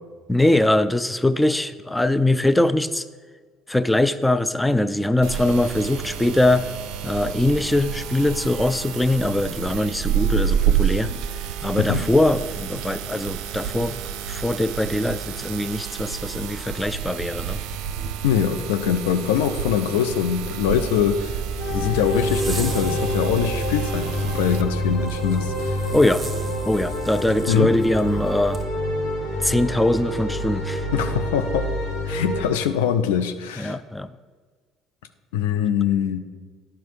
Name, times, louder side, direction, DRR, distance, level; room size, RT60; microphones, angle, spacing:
voice 1, 0.3-3.0 3.7-6.7 7.0-11.1 11.6-14.0 14.3-17.6 25.9-26.2 26.7-28.6 29.4-30.9 33.6-34.1, left 1 dB, 10° left, 14 dB, 0.4 m, -22 dB
sound 1, 5.2-24.6, right 9 dB, 60° right, 0.6 m, -29 dB
voice 2, 18.2-21.4 21.7-25.9 27.4-27.7 30.9-31.7 32.1-33.8 35.3-36.2, left 8 dB, 75° left, 9 dB, 0.5 m, -23 dB
Zipper (clothing), 21.1-28.6, right 5 dB, 15° right, 1.6 m, -35 dB
sound 2, 21.6-32.5, equal, 90° left, 3.1 m, -27 dB
10.5 x 5.8 x 4.8 m, 1.5 s
figure-of-eight pair, 55°, 0 cm